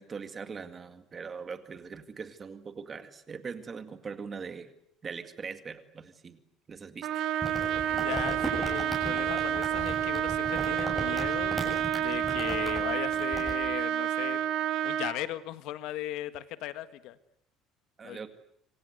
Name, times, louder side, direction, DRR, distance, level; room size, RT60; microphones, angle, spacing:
voice 1, 0.0-4.7 5.0-6.4 6.7-7.1 18.0-18.3, right 5 dB, 20° right, 9 dB, 2.1 m, -41 dB
Trumpet, 7.0-15.2, right 10 dB, 50° right, 2.0 m, -29 dB
Crumpling crinkling, 7.4-13.5, right 1 dB, ahead, 7.5 m, -37 dB
voice 2, 8.0-14.4 14.8-17.2 18.0-18.2, left 14 dB, 65° left, 12 dB, 1.7 m, -38 dB
26.5 x 25.0 x 7.9 m, 0.73 s
cardioid pair, 175°, 0 cm